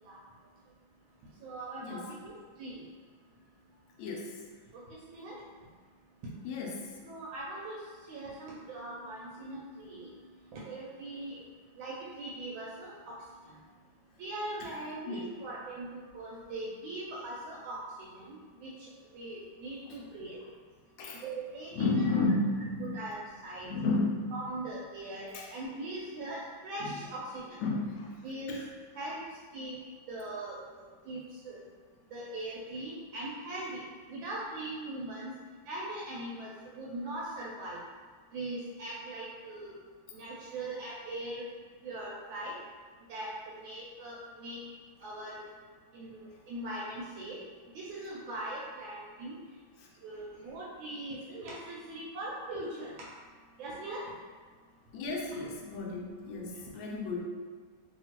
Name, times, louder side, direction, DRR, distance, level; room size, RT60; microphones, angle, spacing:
voice 1, 1.4-2.3 2.6-2.8 4.7-4.8 5.1-5.3 7.0-7.8 8.1-10.1 10.5-11.4 11.8-13.2 14.2-15.9 16.1-18.4 18.6-18.7 19.1-20.4 21.2-22.0 22.9-23.7 24.3-27.6 28.2-28.5 28.9-29.2 29.5-29.7 30.1-31.6 32.1-33.8 34.1-35.3 35.7-37.8 38.3-39.7 40.1-41.4 41.8-42.5 43.1-44.6 45.0-45.4 45.9-47.4 47.7-49.4 50.0-52.9 53.6-54.0, right 1 dB, 80° right, -5 dB, 1.3 m, -40 dB
voice 2, 4.0-4.3 6.4-6.9 15.1-15.3 19.9-20.0 21.0-21.2 21.7-23.2 23.6-24.3 25.3-25.5 26.8-26.9 27.6-28.2 28.5-28.6 54.9-57.2, left 3 dB, 75° left, -1 dB, 1.3 m, -32 dB
3.0 x 2.8 x 2.8 m, 1.5 s
omnidirectional pair, 2.2 m